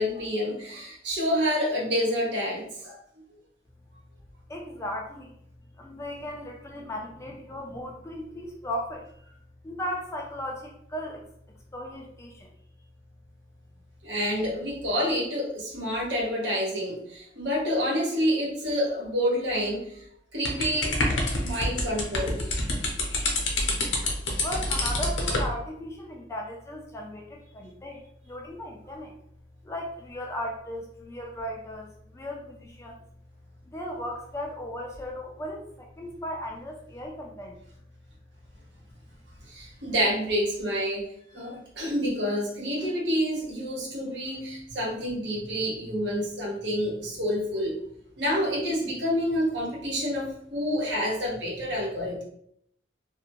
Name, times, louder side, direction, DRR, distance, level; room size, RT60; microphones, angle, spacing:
voice 1, 0.0-3.0 14.0-20.0 20.3-20.9 21.3-22.4 39.5-41.1 41.3-47.8 48.2-52.2, equal, 65° right, -3 dB, 1.0 m, -28 dB
voice 2, 4.5-5.3 5.8-9.1 9.6-11.2 11.7-12.5 24.4-29.1 29.6-33.0 33.7-37.6, equal, 15° left, 0 dB, 0.3 m, -36 dB
sound 1, 20.5-25.5, left 2 dB, 80° left, 0.7 m, -27 dB
2.6 x 2.1 x 2.8 m, 0.70 s
head